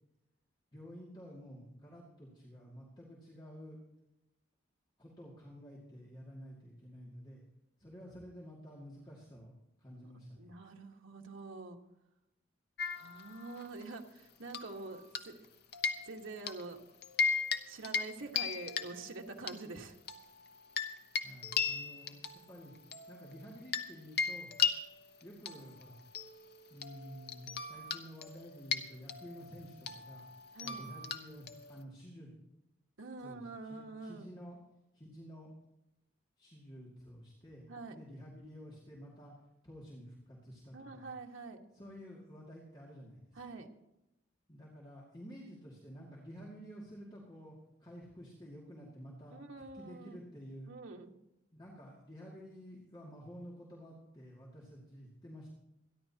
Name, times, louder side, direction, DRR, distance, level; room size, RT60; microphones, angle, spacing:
voice 1, 0.7-3.8 5.0-7.4 7.8-9.5 9.8-10.5 21.2-22.7 23.1-24.5 25.2-26.0 26.7-30.3 30.6-32.3 33.2-34.6 34.9-35.5 36.4-39.3 39.6-41.1 41.7-43.4 44.5-49.4 49.7-50.7 51.5-55.5, equal, 25° left, -5 dB, 2.3 m, -51 dB
voice 2, 10.4-11.8 12.9-15.5 16.0-16.8 17.7-20.0 30.5-30.8 33.0-34.3 37.7-37.9 40.7-41.6 43.3-43.7 49.3-50.2 50.7-51.1, right 3 dB, 85° right, 2 dB, 1.5 m, -46 dB
sound 1, 12.8-13.8 14.5-15.4 15.7-16.6 17.0-17.6 17.8-18.1 18.3-19.5 20.1-23.9 24.2-31.8, left 6 dB, 55° left, 1.0 m, -37 dB
27.0 x 11.0 x 2.9 m, 0.91 s
head